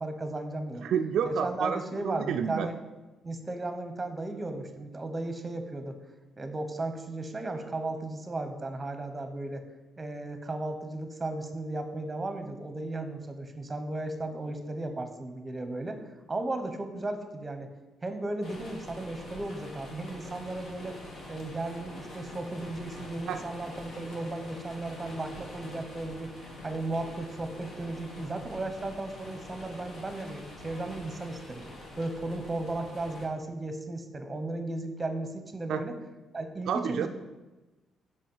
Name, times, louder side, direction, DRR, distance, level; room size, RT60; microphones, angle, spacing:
voice 1, 0.0-0.8 1.2-2.8 3.2-6.0 6.4-9.6 10.0-16.0 16.3-17.7 18.0-21.0 21.3-26.3 26.6-31.6 32.0-36.0 36.3-37.1, right 2 dB, 20° right, 7 dB, 0.9 m, -35 dB
voice 2, 0.8-2.7 23.3-23.4 35.7-35.8 36.7-37.1, right 8 dB, 75° right, 6 dB, 0.3 m, -30 dB
sound 1, 18.4-33.3, left 1 dB, 65° left, 1.7 m, -45 dB
5.3 x 4.8 x 5.4 m, 1.1 s
cardioid pair, 90°, 0 cm